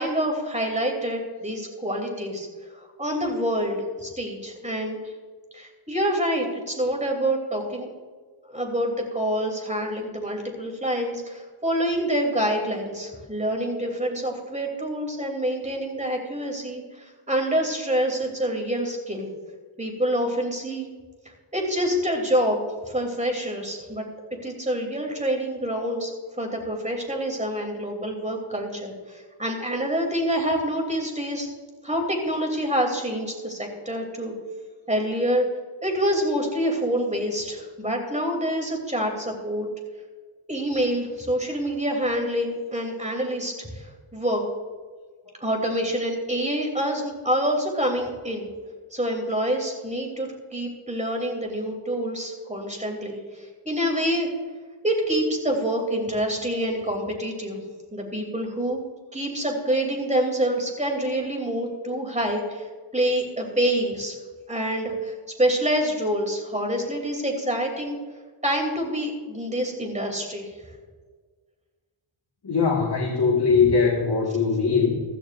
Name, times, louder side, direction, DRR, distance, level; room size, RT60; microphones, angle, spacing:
voice 1, 0.0-2.5 2.8-5.0 5.5-7.9 8.5-19.3 19.8-20.9 21.5-22.6 22.8-24.0 24.4-31.5 31.8-34.3 34.9-35.4 35.8-39.7 40.5-44.4 45.4-48.5 48.9-54.3 54.8-57.6 57.9-58.8 59.1-62.7 62.9-64.2 64.5-68.0 68.4-70.5 73.6-73.7, equal, 15° right, 2 dB, 3.0 m, -26 dB
voice 2, 72.4-75.0, left 5 dB, 50° left, -2 dB, 1.8 m, -21 dB
15.5 x 13.5 x 2.6 m, 1.5 s
wide cardioid pair, 115°, 50 cm